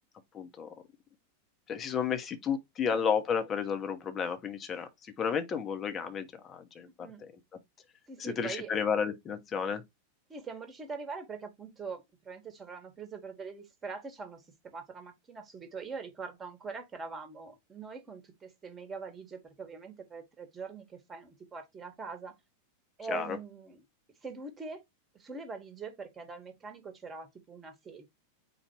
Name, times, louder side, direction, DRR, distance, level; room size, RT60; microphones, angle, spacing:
voice 1, 0.3-0.7 1.7-7.1 8.2-9.8 23.1-23.4, left 7 dB, 25° left, 1.0 m, -32 dB
voice 2, 6.9-7.2 8.1-8.7 10.3-14.4 14.7-22.3 23.0-23.8 24.2-24.8 25.1-28.1, right 4 dB, 20° right, 1.4 m, -43 dB
4.6 x 2.5 x 4.5 m
figure-of-eight pair, 90°, 0 cm